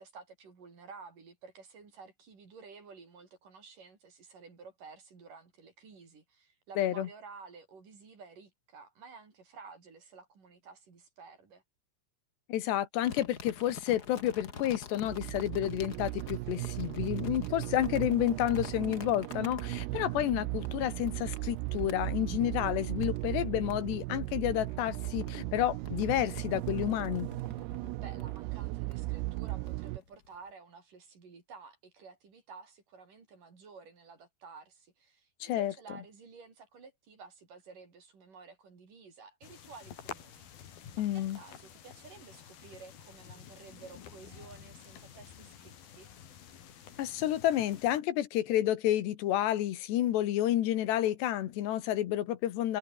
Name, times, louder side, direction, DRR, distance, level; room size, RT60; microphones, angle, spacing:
voice 1, 0.0-11.6 28.0-46.1, right 5 dB, 50° right, 6.3 m, -52 dB
voice 2, 6.8-7.1 12.5-27.3 35.4-35.7 41.0-41.4 47.0-52.8, left 12 dB, 80° left, 3.7 m, -30 dB
sound 1, 13.0-20.2 20.6-22.0 22.6-23.4 23.7-30.3, left 5 dB, 40° left, 1.5 m, -49 dB
sound 2, 15.0-30.0, right 22 dB, 80° right, 2.5 m, -37 dB
sound 3, 39.4-48.0, left 9 dB, 60° left, 4.4 m, -50 dB
omnidirectional pair, 4.9 m